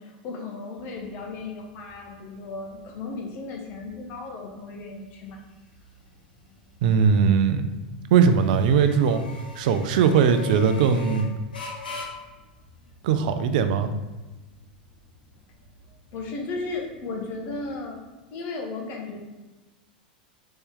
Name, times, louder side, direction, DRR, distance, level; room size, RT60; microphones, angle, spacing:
voice 1, 0.0-5.4 16.1-18.0 18.3-19.2, left 3 dB, 50° left, 1 dB, 1.1 m, -35 dB
sound 1, 0.8-18.0, left 4 dB, 90° left, 1.2 m, -44 dB
voice 2, 6.8-7.7 8.1-9.2 9.6-11.3 13.0-13.9, right 6 dB, 65° right, 9 dB, 0.4 m, -20 dB
4.2 x 3.3 x 3.7 m, 1.1 s
hypercardioid pair, 95°, 5 cm